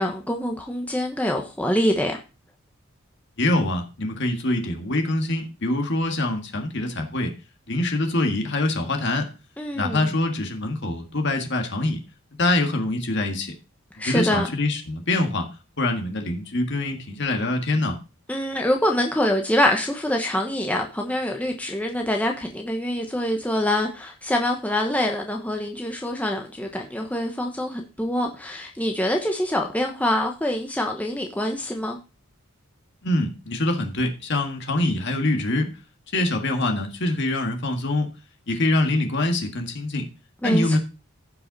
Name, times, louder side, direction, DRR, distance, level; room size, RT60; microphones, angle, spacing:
voice 1, 0.0-2.2 9.6-10.1 14.0-14.5 18.3-32.0 40.4-40.8, left 1 dB, 5° left, 1.0 m, -25 dB
voice 2, 3.4-7.3 7.7-9.3 9.7-12.0 12.4-13.5 14.0-15.5 15.8-18.0 33.0-35.7 36.1-38.1 38.5-40.1 40.4-40.8, left 2 dB, 55° left, 1.7 m, -24 dB
15.5 x 5.7 x 4.1 m
head